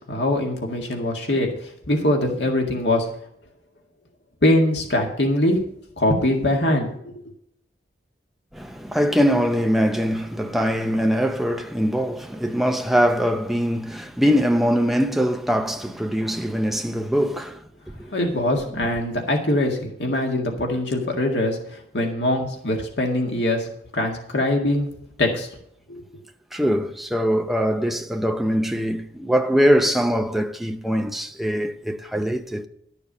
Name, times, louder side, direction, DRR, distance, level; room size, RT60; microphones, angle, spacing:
voice 1, 0.1-1.5 1.9-3.1 4.4-5.6 6.0-7.1 18.1-21.6 21.9-23.7 23.9-24.9 25.2-25.5 25.9-26.0, left 1 dB, 80° left, 1.9 m, -22 dB
voice 2, 8.5-17.6 26.5-32.7, equal, ahead, 0.7 m, -22 dB
12.0 x 6.9 x 5.5 m
head